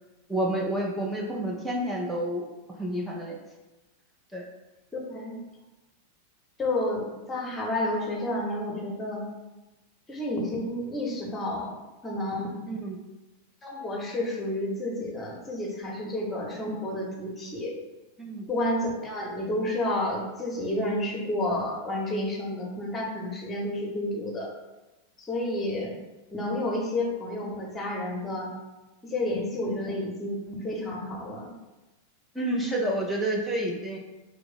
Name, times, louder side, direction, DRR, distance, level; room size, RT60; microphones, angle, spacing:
voice 1, 0.3-2.5 2.8-3.3 4.3-4.4 12.7-13.0 18.2-18.5 32.3-34.0, right 1 dB, 5° right, -3 dB, 0.6 m, -29 dB
voice 2, 4.9-5.4 6.6-9.3 10.1-11.7 12.0-12.6 13.6-17.8 18.5-24.5 25.2-25.9 26.3-28.5 29.0-31.5, left 1 dB, 15° left, -1 dB, 1.0 m, -30 dB
3.4 x 2.9 x 4.0 m, 1.1 s
figure-of-eight pair, 90°, 0 cm